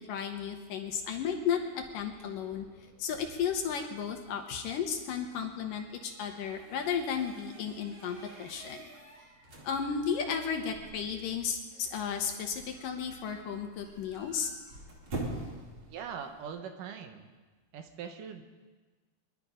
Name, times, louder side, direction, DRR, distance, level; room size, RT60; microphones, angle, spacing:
voice 1, 0.1-2.7 3.0-8.8 9.6-14.5, left 7 dB, 70° left, 4 dB, 2.5 m, -34 dB
sound 1, 1.4-16.5, right 2 dB, 40° right, 2.6 m, -48 dB
voice 2, 15.8-17.3 17.7-18.4, right 7 dB, 70° right, 6 dB, 2.4 m, -41 dB
23.0 x 11.5 x 5.0 m, 1.3 s
omnidirectional pair, 4.5 m